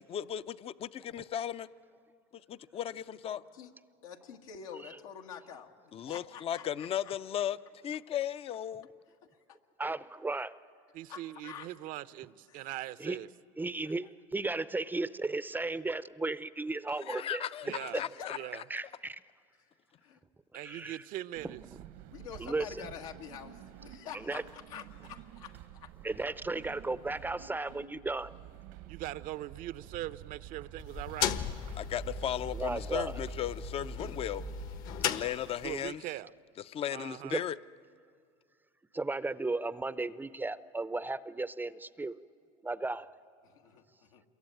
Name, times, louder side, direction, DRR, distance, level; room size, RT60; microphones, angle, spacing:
voice 1, 0.0-1.7 2.5-3.4 5.9-7.6 7.8-8.9 17.1-18.4 31.8-34.4 35.0-36.0 36.7-37.6, left 10 dB, 35° left, 0.6 m, -36 dB
voice 2, 3.2-3.7 4.0-5.7 6.1-7.1 9.2-9.6 11.1-11.7 12.5-12.7 13.8-13.9 17.7-18.3 20.0-20.2 22.1-25.9 43.4-44.2, left 8 dB, 90° left, 1.9 m, -47 dB
voice 3, 9.8-10.5 13.0-13.2 13.6-17.5 18.7-19.2 20.6-21.0 21.4-21.5 22.4-22.9 24.1-24.4 26.0-28.3 32.5-33.1 37.2-37.4 38.9-42.2 42.6-43.1, right 3 dB, 10° right, 0.6 m, -35 dB
voice 4, 10.9-13.3 17.6-18.0 18.3-18.6 20.5-21.6 28.9-31.4 35.6-36.3 36.9-37.4, right 14 dB, 55° right, 0.7 m, -41 dB
sound 1, 21.3-34.8, right 13 dB, 70° right, 1.2 m, -49 dB
sound 2, 30.8-35.9, left 8 dB, 60° left, 1.3 m, -37 dB
27.5 x 22.5 x 9.1 m
supercardioid pair, 100°, 17 cm